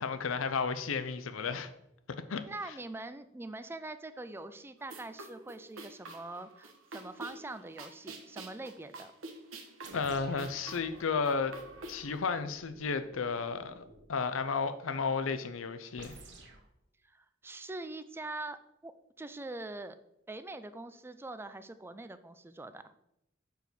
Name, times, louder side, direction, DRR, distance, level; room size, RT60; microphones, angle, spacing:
voice 1, 0.0-1.7 2.3-2.4 9.9-11.6 11.9-16.1, left 5 dB, 85° left, 0.6 m, -33 dB
voice 2, 2.5-9.1 17.0-18.6 18.8-18.9 19.2-20.0 20.3-22.9, right 2 dB, 10° right, 0.3 m, -43 dB
sound 1, 4.8-12.2, right 2 dB, 90° right, 1.1 m, -48 dB
sound 2, 9.8-14.1 16.0-16.7, right 2 dB, 60° right, 1.2 m, -53 dB
5.2 x 4.7 x 6.0 m
head